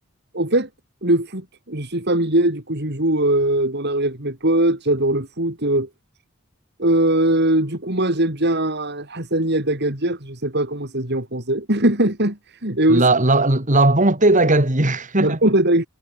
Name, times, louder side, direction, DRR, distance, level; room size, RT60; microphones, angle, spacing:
voice 1, 0.3-0.7 1.0-5.9 6.8-13.0 15.2-15.9, right 1 dB, 50° right, 5.1 m, -20 dB
voice 2, 12.9-15.4, right 2 dB, 35° right, 2.9 m, -17 dB
head